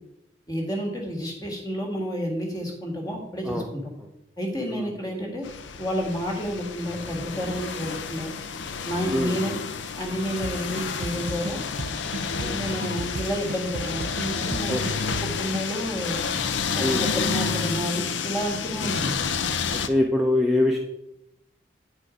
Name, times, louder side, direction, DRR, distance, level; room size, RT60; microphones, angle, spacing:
voice 1, 0.5-3.9 4.4-5.5 5.8-8.3 8.8-9.6 10.0-11.6 12.5-14.9 15.2-16.2 16.7-19.1, equal, 20° left, 0 dB, 1.7 m, -30 dB
sound 1, 5.4-19.9, left 5 dB, 85° left, 0.6 m, -30 dB
sound 2, 10.4-15.7, right 3 dB, 40° right, 0.3 m, -35 dB
voice 2, 14.7-15.1 16.8-17.0 18.8-19.0 19.9-20.8, left 1 dB, ahead, -1 dB, 0.6 m, -24 dB
9.6 x 4.4 x 5.0 m, 0.84 s
head